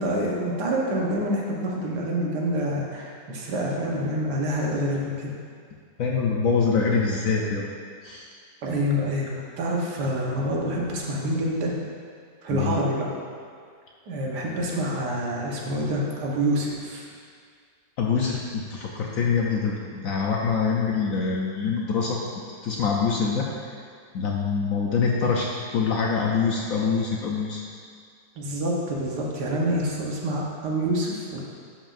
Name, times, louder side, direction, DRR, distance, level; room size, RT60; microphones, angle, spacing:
voice 1, 0.0-5.3 8.6-11.7 12.4-13.1 14.1-17.0 28.4-31.4, equal, 75° right, -2 dB, 1.6 m, -27 dB
voice 2, 6.0-7.7 8.0-8.3 12.5-12.8 18.0-22.2 22.6-23.5 24.1-27.6, left 5 dB, 70° left, -2 dB, 0.8 m, -25 dB
11.0 x 5.2 x 2.5 m, 2.1 s
omnidirectional pair, 1.9 m